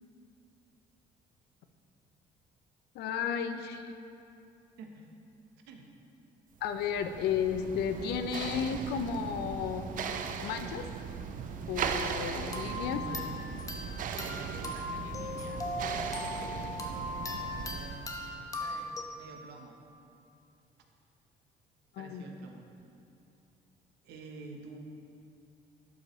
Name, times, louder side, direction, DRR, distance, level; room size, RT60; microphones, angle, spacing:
voice 1, 2.9-3.8 6.6-9.9 10.4-10.8 11.7-13.0 22.0-22.2, left 7 dB, 75° left, 8 dB, 0.5 m, -33 dB
voice 2, 4.8-5.1 5.7-5.9 12.7-13.9 14.2-19.8 22.0-22.6 24.0-24.8, right 3 dB, 80° right, 2 dB, 0.9 m, -49 dB
sound 1, 6.6-18.1, right 6 dB, 55° right, 0.5 m, -38 dB
sound 2, 12.5-19.0, left 1 dB, 20° left, 0.8 m, -39 dB
11.5 x 5.1 x 3.1 m, 2.6 s
cardioid pair, 110°, 17 cm